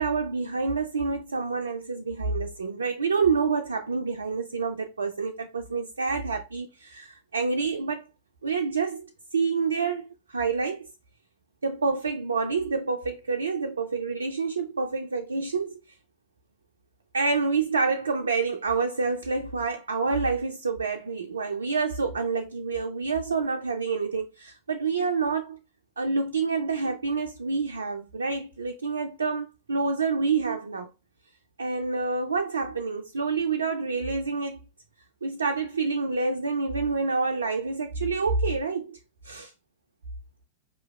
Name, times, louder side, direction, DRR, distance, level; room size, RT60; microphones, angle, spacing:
voice 1, 0.0-8.0 8.4-9.0 9.3-10.9 11.6-15.8 17.1-25.6 26.0-30.9 31.6-34.6 35.2-39.0 39.2-39.5, right 4 dB, 75° right, 0.4 m, -28 dB
4.7 x 2.9 x 2.3 m
figure-of-eight pair, 90°, 0 cm